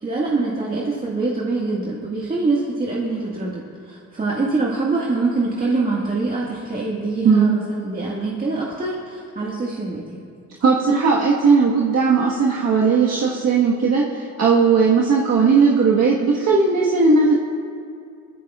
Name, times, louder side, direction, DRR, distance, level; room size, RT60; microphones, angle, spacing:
voice 1, 0.0-10.2, right 3 dB, 30° right, -5 dB, 1.8 m, -24 dB
voice 2, 10.6-17.4, right 5 dB, 60° right, -4 dB, 1.5 m, -17 dB
20.0 x 14.5 x 2.4 m, 2.3 s
cardioid pair, 90°, 30 cm